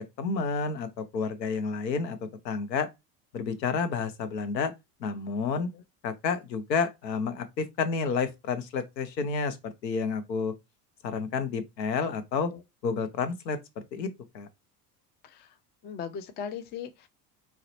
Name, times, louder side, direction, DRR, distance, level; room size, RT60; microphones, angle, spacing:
voice 1, 0.0-2.2 2.4-2.9 3.3-4.7 5.0-5.7 6.0-10.5 11.0-12.5 12.8-14.1 14.3-14.5, left 5 dB, 90° left, 0.6 m, -30 dB
voice 2, 15.8-17.1, left 7 dB, 25° left, 0.3 m, -38 dB
3.9 x 2.1 x 2.7 m
hypercardioid pair, 70°, 49 cm